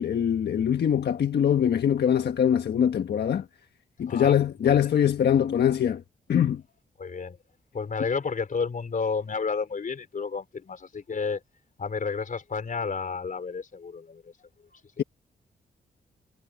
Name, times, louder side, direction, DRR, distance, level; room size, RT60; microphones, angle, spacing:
voice 1, 0.0-3.4 4.0-6.0 6.3-6.6, left 9 dB, 70° left, 1.4 m, -23 dB
voice 2, 4.1-4.8 7.0-7.4 7.7-11.4 11.8-14.3 14.7-14.8, left 5 dB, 50° left, 4.0 m, -31 dB
cardioid pair, 70°, 18 cm